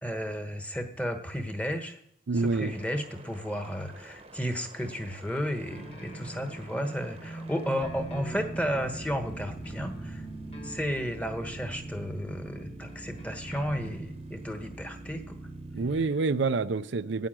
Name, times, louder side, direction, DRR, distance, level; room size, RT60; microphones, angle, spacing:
voice 1, 0.0-2.0 2.3-10.3 10.6-15.2, equal, 5° left, 1.2 m, -33 dB
sound 1, 2.3-16.1, right 2 dB, 30° right, 0.9 m, -45 dB
voice 2, 2.3-2.7 15.7-17.3, right 4 dB, 75° right, 0.5 m, -27 dB
sound 2, 5.7-14.0, right 1 dB, 30° left, 1.9 m, -42 dB
9.2 x 7.1 x 9.0 m
head